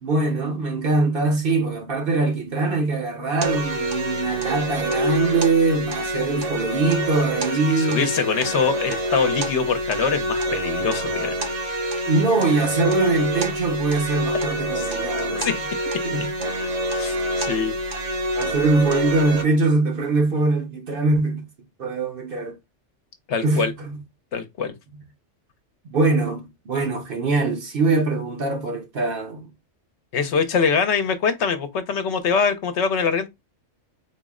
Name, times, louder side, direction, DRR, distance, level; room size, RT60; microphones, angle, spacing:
voice 1, 0.0-8.1 12.1-15.5 16.0-16.3 18.3-21.5 21.8-22.6 23.4-24.0 25.8-29.5, right 3 dB, 55° right, 0.8 m, -22 dB
sound 1, 3.4-19.4, equal, 75° right, 1.4 m, -26 dB
voice 2, 7.8-11.3 14.8-15.0 15.4-15.5 16.9-17.7 23.3-23.7 24.3-24.7 30.1-33.3, left 5 dB, 70° left, 0.9 m, -23 dB
4.0 x 2.0 x 3.5 m
omnidirectional pair, 1.3 m